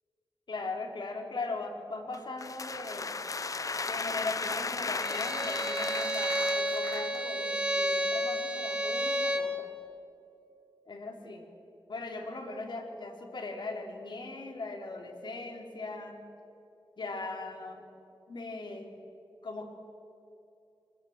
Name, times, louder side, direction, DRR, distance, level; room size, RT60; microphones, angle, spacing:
voice 1, 0.5-3.1 3.9-9.7 10.9-11.5 11.9-16.2 17.0-17.9 18.3-19.0 19.4-19.7, left 3 dB, 60° left, 2 dB, 3.6 m, -39 dB
sound 1, 2.1-7.2, left 4 dB, 40° left, 0.7 m, -35 dB
Bowed string instrument, 5.0-9.5, equal, 10° right, 2.1 m, -31 dB
26.0 x 20.0 x 8.0 m, 2.8 s
wide cardioid pair, 110°, 9 cm